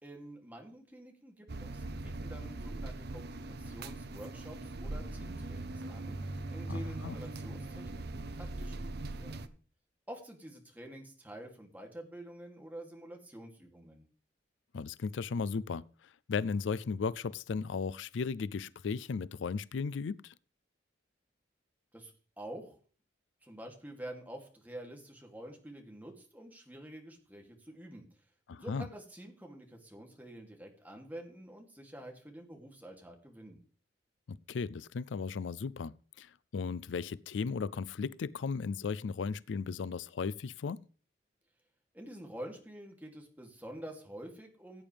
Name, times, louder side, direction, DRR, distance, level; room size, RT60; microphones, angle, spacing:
voice 1, 0.0-9.5 10.1-14.1 21.9-22.8 23.4-28.0 28.6-33.6 41.9-44.8, right 1 dB, 10° right, 2.7 m, -48 dB
sound 1, 1.5-9.5, right 2 dB, 60° right, 0.8 m, -40 dB
voice 2, 6.7-7.2 14.7-20.3 28.5-28.9 34.3-40.8, left 5 dB, 85° left, 0.4 m, -36 dB
16.5 x 8.9 x 3.4 m
head